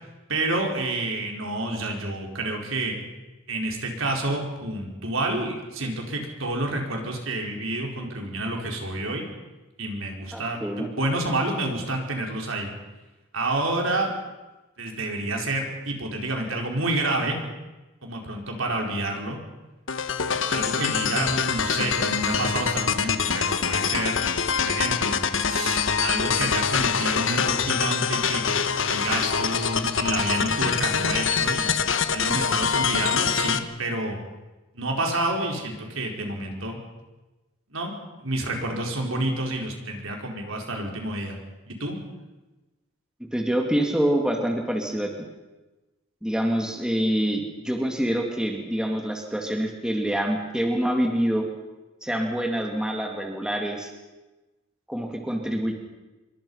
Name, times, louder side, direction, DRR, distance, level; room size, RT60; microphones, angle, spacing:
voice 1, 0.3-3.0 3.5-9.3 9.8-12.7 13.3-14.1 14.8-17.4 18.0-19.4 20.5-24.3 24.6-25.2 25.5-31.8 32.1-34.2 34.7-36.8 37.7-37.9 38.2-41.4 41.7-42.0, right 2 dB, 70° right, 1 dB, 4.8 m, -29 dB
voice 2, 10.3-10.9 43.2-45.1 46.2-51.5 52.0-53.9 54.9-55.7, right 1 dB, 5° right, 2 dB, 2.6 m, -26 dB
sound 1, 19.9-33.6, left 6 dB, 60° left, 1.3 m, -25 dB
26.5 x 23.5 x 5.7 m, 1.1 s
head